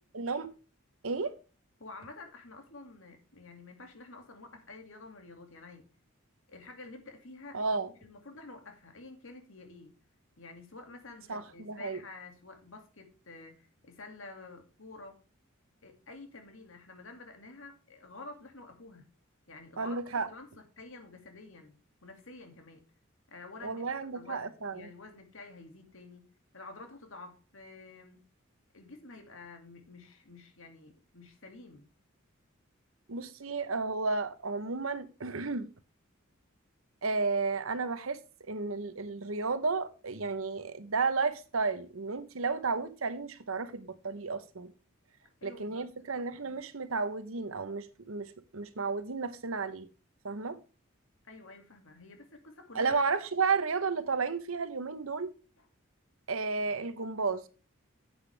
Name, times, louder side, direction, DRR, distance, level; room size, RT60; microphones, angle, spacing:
voice 1, 0.1-0.5 1.0-1.4 7.5-7.9 11.3-12.0 19.8-20.3 23.6-24.9 33.1-35.7 37.0-38.2 38.5-44.7 45.4-49.9 50.2-50.6 52.7-55.3 56.3-57.4, right 4 dB, 75° right, 1.0 m, -32 dB
voice 2, 1.8-5.9 6.5-10.0 10.4-15.2 15.8-19.1 19.5-20.0 20.3-21.8 22.0-22.8 23.3-23.8 24.1-26.3 26.5-28.2 28.7-31.8 45.2-45.8 51.2-53.0 55.6-55.7, left 3 dB, 70° left, 2.4 m, -49 dB
9.9 x 8.2 x 3.4 m
head